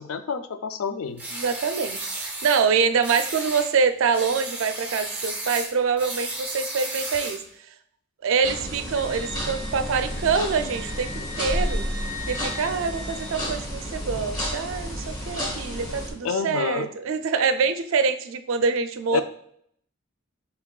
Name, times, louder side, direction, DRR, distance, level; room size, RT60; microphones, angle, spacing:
voice 1, 0.0-1.3 16.2-16.9 19.1-19.2, left 5 dB, 80° left, 11 dB, 0.4 m, -28 dB
sound 1, 1.2-2.6 3.0-3.7 4.1-7.5, right 2 dB, 10° right, 0.6 m, -33 dB
voice 2, 1.3-7.4 8.2-11.9 12.3-19.2, right 5 dB, 70° right, 10 dB, 0.4 m, -25 dB
sound 2, 8.4-16.1, equal, 20° left, 1.1 m, -31 dB
Wind instrument woodwind instrument, 8.9-13.4, left 3 dB, 50° left, 1.5 m, -40 dB
5.9 x 3.3 x 2.3 m, 0.68 s
head